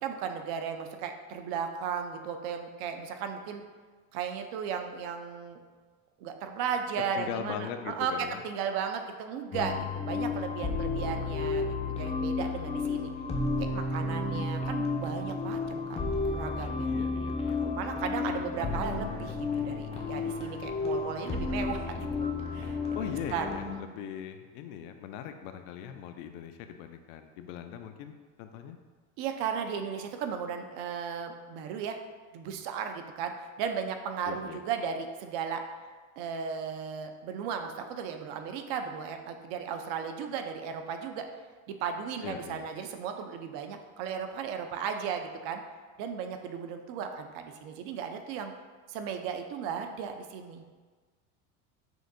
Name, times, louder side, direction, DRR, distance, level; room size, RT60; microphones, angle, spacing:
voice 1, 0.0-3.6 4.1-5.6 6.2-13.1 13.6-16.0 16.3-16.9 17.6-23.5 29.2-32.0 32.3-33.3 33.6-35.6 36.2-41.3 41.7-45.6 46.0-48.5 48.9-50.6, right 7 dB, 65° right, 6 dB, 0.6 m, -35 dB
voice 2, 7.0-8.4 16.8-17.6 18.2-18.9 23.0-28.8 34.2-34.6 42.2-42.7, left 9 dB, 75° left, 7 dB, 0.5 m, -40 dB
sound 1, 9.5-23.8, left 3 dB, 15° left, 0.5 m, -32 dB
6.3 x 2.6 x 2.6 m, 1.4 s
supercardioid pair, 110°, 41 cm